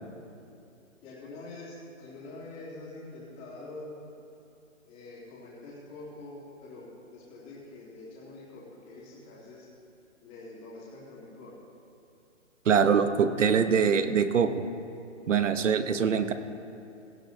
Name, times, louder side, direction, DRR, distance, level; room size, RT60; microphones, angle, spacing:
voice 1, 1.0-3.9 4.8-9.7 10.2-11.5, left 2 dB, 15° left, -7 dB, 2.7 m, -45 dB
voice 2, 12.7-14.6 15.3-16.3, right 6 dB, 70° right, 9 dB, 1.0 m, -23 dB
17.0 x 15.0 x 2.7 m, 2.7 s
hypercardioid pair, 160°, 38 cm